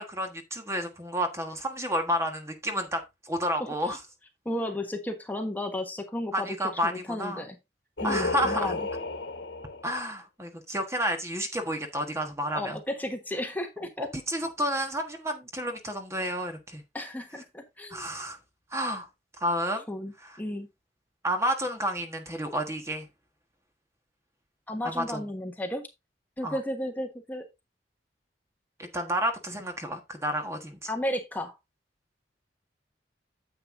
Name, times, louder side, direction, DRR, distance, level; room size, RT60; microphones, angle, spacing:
voice 1, 0.0-4.0 6.3-7.4 8.0-8.8 9.8-12.8 14.0-16.8 17.9-18.4 18.7-19.1 19.4-19.8 21.2-23.1 24.8-25.2 26.4-26.6 28.8-30.9, equal, 15° right, 1.4 m, -30 dB
voice 2, 3.6-4.0 4.4-7.6 8.0-8.9 12.5-14.1 16.9-18.1 19.9-20.7 24.7-25.8 26.4-27.5 30.9-31.6, left 1 dB, 10° left, 1.3 m, -34 dB
Singing, 8.0-10.0, left 3 dB, 70° left, 1.4 m, -32 dB
9.5 x 8.0 x 2.6 m
head